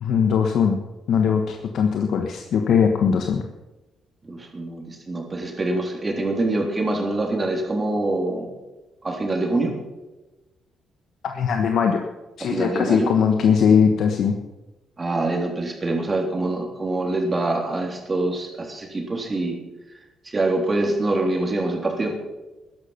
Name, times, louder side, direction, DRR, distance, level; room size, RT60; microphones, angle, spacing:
voice 1, 0.0-0.8 1.1-3.4 11.2-12.0 12.4-14.3, left 6 dB, 70° left, 4 dB, 1.2 m, -20 dB
voice 2, 4.2-8.5 9.0-9.7 12.4-13.1 15.0-19.6 20.2-22.1, right 2 dB, 25° right, 2 dB, 3.5 m, -25 dB
13.5 x 10.5 x 5.8 m, 1.1 s
cardioid pair, 90°, 0 cm